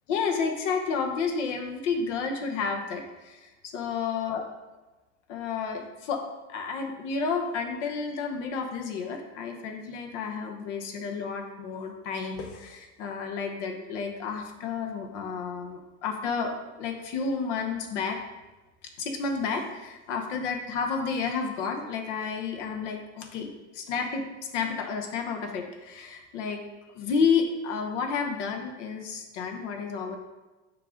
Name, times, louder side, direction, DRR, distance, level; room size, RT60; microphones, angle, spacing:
voice 1, 0.1-4.4 5.3-6.2 6.5-18.2 19.0-24.3 24.5-26.6 26.9-30.2, left 5 dB, 75° left, 4 dB, 1.1 m, -31 dB
6.5 x 5.1 x 3.7 m, 1.1 s
hypercardioid pair, 85°, 36 cm